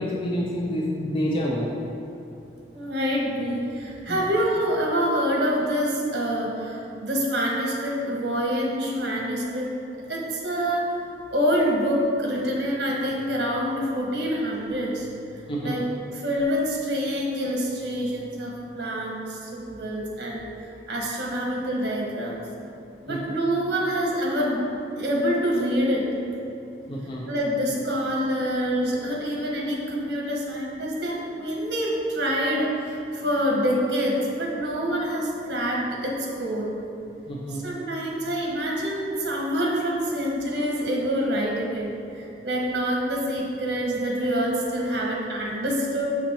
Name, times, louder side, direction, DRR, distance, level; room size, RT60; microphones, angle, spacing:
voice 1, 0.0-1.7 4.1-4.3 15.5-15.8 23.1-23.2 26.9-27.3 37.3-37.7, equal, 30° left, -3 dB, 0.5 m, -28 dB
voice 2, 2.7-9.7 10.1-10.9 11.3-15.1 15.3-15.8 16.1-20.5 20.9-22.4 23.0-24.6 25.0-26.1 27.3-36.7 37.5-46.1, equal, 70° right, -2 dB, 1.2 m, -26 dB
6.3 x 5.0 x 3.4 m, 2.8 s
head